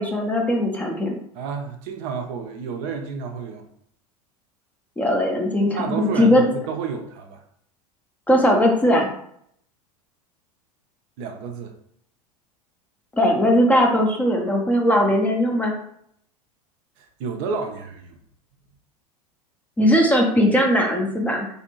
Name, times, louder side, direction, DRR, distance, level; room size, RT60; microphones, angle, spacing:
voice 1, 0.0-1.2 5.0-6.4 8.3-9.1 13.1-15.7 19.8-21.5, equal, 10° left, 1 dB, 0.5 m, -19 dB
voice 2, 1.3-3.6 5.8-7.4 11.2-11.8 17.0-18.2, right 5 dB, 40° right, 4 dB, 0.5 m, -30 dB
3.4 x 2.5 x 2.8 m, 0.68 s
figure-of-eight pair, 80°, 20 cm